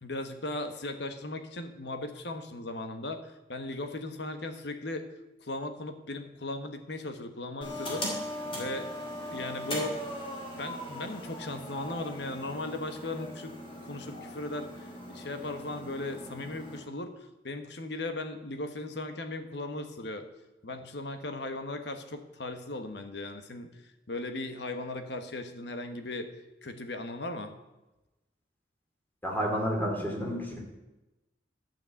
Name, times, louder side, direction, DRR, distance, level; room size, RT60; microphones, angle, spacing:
voice 1, 0.0-5.1 5.4-8.1 8.4-9.0 9.3-10.0 10.5-13.6 13.8-17.1 17.4-20.2 20.6-23.7 24.1-26.3 26.6-27.5, left 2 dB, 60° left, 8 dB, 1.2 m, -37 dB
sound 1, 7.6-16.8, equal, 30° left, 3.0 m, -39 dB
voice 2, 29.2-30.6, equal, 10° left, 0 dB, 2.6 m, -30 dB
12.0 x 6.1 x 8.2 m, 1.0 s
head